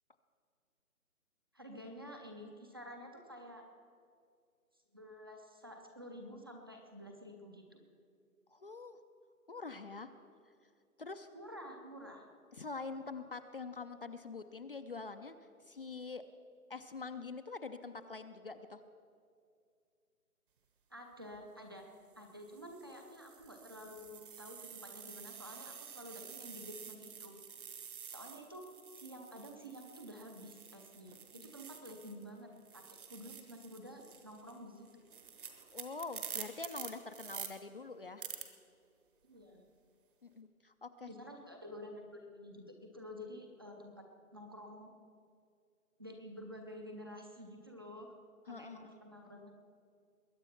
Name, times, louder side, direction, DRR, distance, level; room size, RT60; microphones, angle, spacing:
voice 1, 1.5-3.6 4.9-7.8 11.3-12.2 20.9-21.9 22.1-27.4 28.1-28.6 28.9-34.9 39.2-39.6 41.1-44.0 44.3-44.9 46.0-48.1 48.4-49.5, equal, 15° right, 3 dB, 0.6 m, -50 dB
voice 2, 8.5-9.0 9.5-10.1 11.0-11.3 12.5-15.4 15.7-16.2 16.7-18.8 31.3-31.5 35.7-38.2 40.2-41.1 48.5-48.9, left 4 dB, 40° left, 9 dB, 0.5 m, -45 dB
sound 1, 21.1-21.4 22.1-32.3 32.6-37.5 38.2-38.4, right 7 dB, 35° right, 1.2 m, -49 dB
21.0 x 8.9 x 5.8 m, 2.3 s
figure-of-eight pair, 150°, 44 cm